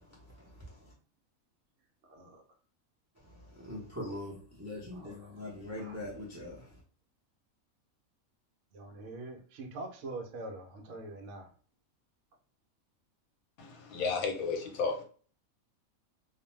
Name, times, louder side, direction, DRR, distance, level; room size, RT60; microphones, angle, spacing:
voice 1, 2.1-2.4 4.9-5.4 5.8-6.0 8.7-11.5, right 2 dB, 70° right, 0.8 m, -44 dB
voice 2, 3.6-6.7, left 1 dB, 15° right, 0.5 m, -41 dB
voice 3, 13.6-15.0, left 4 dB, 80° left, 1.1 m, -33 dB
2.5 x 2.1 x 3.1 m
omnidirectional pair, 1.5 m